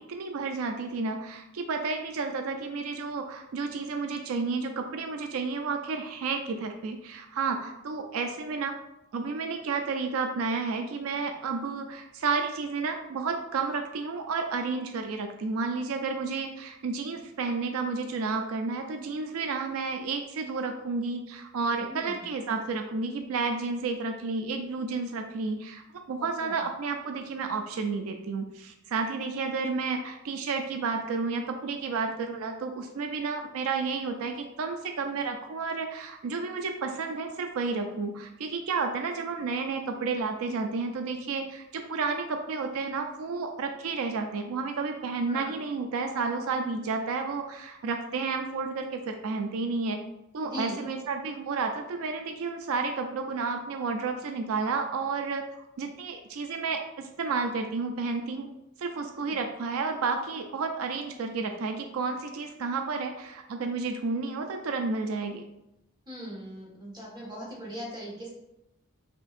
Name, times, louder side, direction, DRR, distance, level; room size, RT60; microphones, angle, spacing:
voice 1, 0.0-8.7 9.1-50.0 50.3-55.4 55.8-58.5 58.8-65.5, right 4 dB, 80° right, 5 dB, 0.4 m, -31 dB
voice 2, 21.9-22.2 26.2-26.5 45.3-45.5 50.4-50.8 59.2-59.4 66.1-68.3, equal, 20° right, -4 dB, 1.3 m, -40 dB
5.9 x 2.7 x 2.4 m, 0.88 s
head